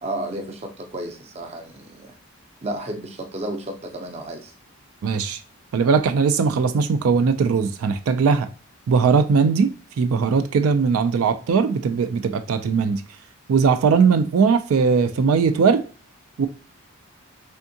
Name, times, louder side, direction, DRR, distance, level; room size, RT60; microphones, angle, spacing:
voice 1, 0.0-2.1 2.6-4.5, right 1 dB, 30° right, 0.5 m, -32 dB
voice 2, 5.0-5.4 5.7-8.5 8.9-13.0 13.5-15.8 16.4-16.5, right 5 dB, 85° right, 0.3 m, -19 dB
3.5 x 3.5 x 2.7 m
head